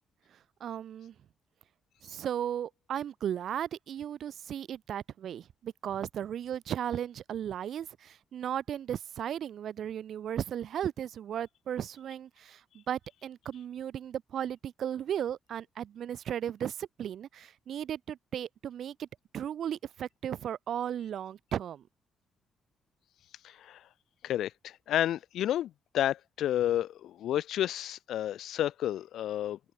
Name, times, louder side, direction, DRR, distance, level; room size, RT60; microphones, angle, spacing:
voice 1, 0.3-1.1 2.0-19.1 19.3-21.8, right 9 dB, 65° right, 0.4 m, -36 dB
voice 2, 23.4-23.8 24.2-29.6, left 12 dB, 75° left, 0.4 m, -31 dB
cardioid pair, 90°, 0 cm